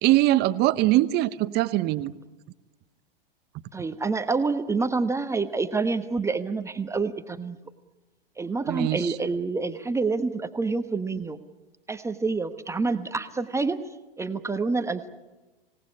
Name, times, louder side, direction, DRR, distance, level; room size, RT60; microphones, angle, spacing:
voice 1, 0.0-2.1 8.7-9.1, right 16 dB, 35° right, 14 dB, 1.0 m, -22 dB
voice 2, 3.7-7.6 8.4-11.4 11.9-13.8 14.2-15.1, right 4 dB, 10° right, 8 dB, 1.1 m, -27 dB
26.5 x 18.0 x 9.8 m, 1.1 s
figure-of-eight pair, 100°, 29 cm